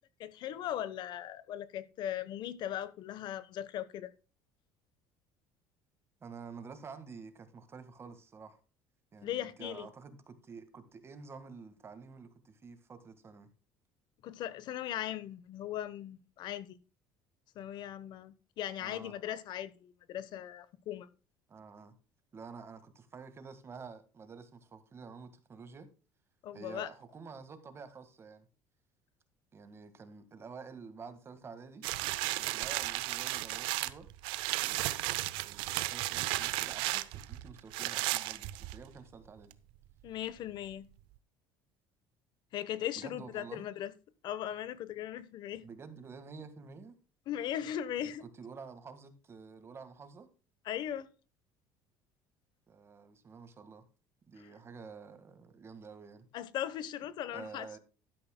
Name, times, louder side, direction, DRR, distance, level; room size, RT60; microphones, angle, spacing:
voice 1, 0.2-4.1 9.2-9.9 14.2-16.8 17.6-21.1 26.4-26.9 40.0-40.9 42.5-43.9 44.2-45.6 47.3-48.3 50.6-51.1 56.3-57.7, left 11 dB, 60° left, 1.0 m, -38 dB
voice 2, 6.2-8.6 9.1-13.5 18.8-19.1 21.5-21.9 22.3-25.9 26.5-28.5 29.5-31.8 32.3-34.1 34.6-35.0 35.3-39.5 42.9-43.7 45.6-46.9 48.2-50.3 52.7-53.8 54.3-56.3 57.3-57.8, right 5 dB, 30° right, 1.7 m, -49 dB
sound 1, 31.8-39.0 39.5-39.6, right 19 dB, 80° right, 0.7 m, -34 dB
12.5 x 11.0 x 2.2 m
cardioid pair, 125°, 9 cm